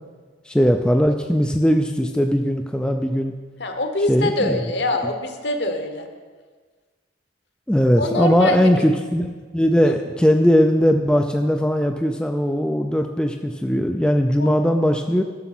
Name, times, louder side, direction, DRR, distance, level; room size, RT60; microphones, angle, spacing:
voice 1, 0.5-3.3 4.1-4.6 7.7-15.2, equal, 5° left, 4 dB, 0.3 m, -19 dB
voice 2, 3.6-6.1 8.0-8.6 9.8-9.9 14.4-14.7, left 2 dB, 60° left, 6 dB, 1.1 m, -24 dB
11.0 x 6.8 x 6.0 m, 1.5 s
head